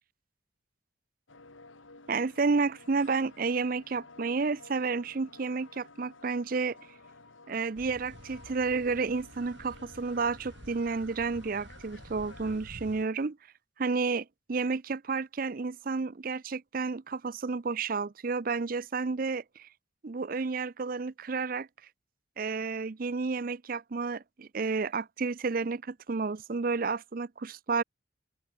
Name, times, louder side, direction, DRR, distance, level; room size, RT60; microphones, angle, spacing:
sound 1, 1.3-12.6, left 3 dB, 85° left, 4.1 m, -54 dB
voice 1, 2.1-6.8 7.5-13.4 13.8-19.7 20.0-21.7 22.4-27.8, right 4 dB, 45° right, 0.5 m, -31 dB
sound 2, 7.8-13.0, right 1 dB, 65° right, 5.4 m, -50 dB
open air
head